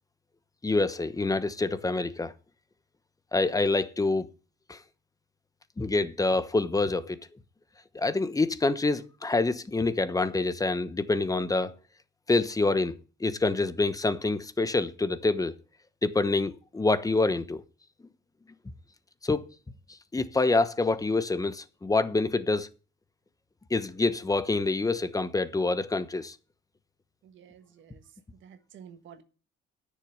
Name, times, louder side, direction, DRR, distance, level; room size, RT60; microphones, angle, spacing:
voice 1, 0.6-2.3 3.3-4.3 4.7-4.8 5.8-7.2 7.9-11.7 12.3-15.5 16.0-17.6 19.2-19.4 20.1-22.7 23.7-26.3, left 3 dB, 15° left, 1.0 m, -26 dB
voice 2, 27.2-28.0 28.4-29.2, right 8 dB, 75° right, 1.4 m, -51 dB
10.0 x 6.6 x 8.0 m
cardioid pair, 90°, 20 cm